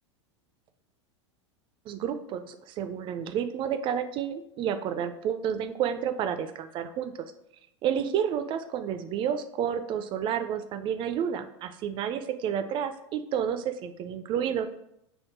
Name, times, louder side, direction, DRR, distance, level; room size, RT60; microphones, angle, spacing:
voice 1, 1.9-7.1 7.8-14.7, right 8 dB, 35° right, 9 dB, 0.3 m, -30 dB
3.5 x 2.1 x 4.3 m, 0.79 s
hypercardioid pair, 95°, 15 cm